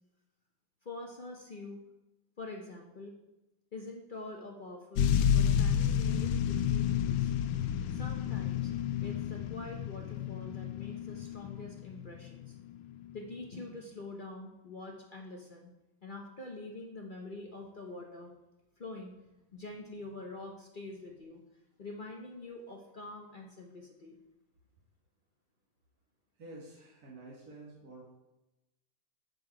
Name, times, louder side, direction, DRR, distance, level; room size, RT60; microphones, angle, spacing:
voice 1, 0.8-1.8 2.4-3.1 3.7-7.3 7.9-8.7 9.0-12.6 13.1-15.7 16.0-18.3 18.8-19.2 19.5-21.4 21.8-24.2, left 2 dB, 45° left, 1 dB, 0.6 m, -45 dB
sound 1, 5.0-12.5 13.2-13.3, left 9 dB, 90° left, 1.3 m, -30 dB
voice 2, 26.4-28.1, right 2 dB, 50° right, -4 dB, 2.2 m, -49 dB
7.7 x 6.7 x 4.8 m, 0.98 s
omnidirectional pair, 2.1 m